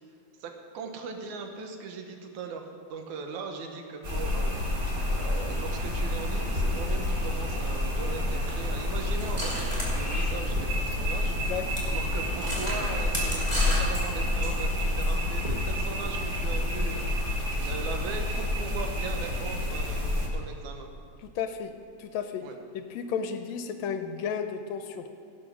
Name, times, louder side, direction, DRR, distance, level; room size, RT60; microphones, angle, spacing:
voice 1, 0.4-2.6 2.9-4.6 5.1-11.5 11.8-17.1 17.6-20.9 22.4-22.6, right 5 dB, 80° right, 4 dB, 2.5 m, -39 dB
sound 1, 4.0-20.3, left 1 dB, 30° right, 1.0 m, -29 dB
sound 2, 9.2-11.0 11.3-11.4 11.7-11.9 12.3-15.1, left 2 dB, 10° right, 2.3 m, -31 dB
voice 2, 11.3-11.7 21.2-21.7 22.0-22.5 22.7-25.2, left 7 dB, 80° left, 7 dB, 1.8 m, -33 dB
17.0 x 6.2 x 6.0 m, 2.4 s
omnidirectional pair, 3.4 m